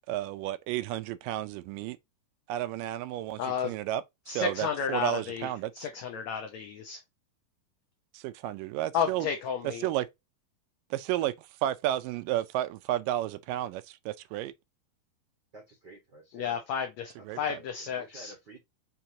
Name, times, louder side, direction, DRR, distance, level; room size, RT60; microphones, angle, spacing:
voice 1, 0.0-2.0 2.5-5.9 8.1-9.3 9.6-10.1 10.9-14.5 17.3-17.6, right 13 dB, 85° right, 2.2 m, -32 dB
voice 2, 3.4-3.7 4.3-5.5 5.7-7.0 8.9-9.9 16.3-18.3, left 7 dB, 75° left, 1.6 m, -32 dB
voice 3, 15.5-16.6 17.2-18.6, right 1 dB, 60° right, 1.1 m, -50 dB
5.8 x 3.0 x 2.7 m
omnidirectional pair, 4.0 m